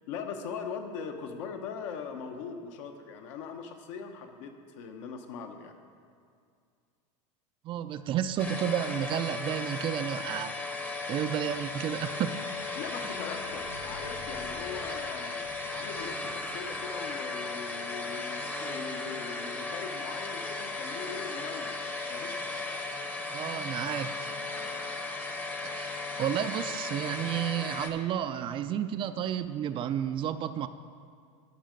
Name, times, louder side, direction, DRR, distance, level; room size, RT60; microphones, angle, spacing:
voice 1, 0.1-5.7 12.8-15.4 15.7-21.8 22.1-22.4, left 6 dB, 70° left, 5 dB, 1.0 m, -40 dB
voice 2, 7.6-10.5 11.1-12.4 23.3-24.3 25.6-25.9 26.2-30.7, right 10 dB, 30° right, 11 dB, 0.3 m, -31 dB
sound 1, 8.4-27.9, left 3 dB, 10° left, 0.7 m, -36 dB
Squeak, 11.5-17.9 18.6-18.7, left 2 dB, 90° left, 1.4 m, -52 dB
12.0 x 5.5 x 5.1 m, 2.2 s
supercardioid pair, 130°, 16 cm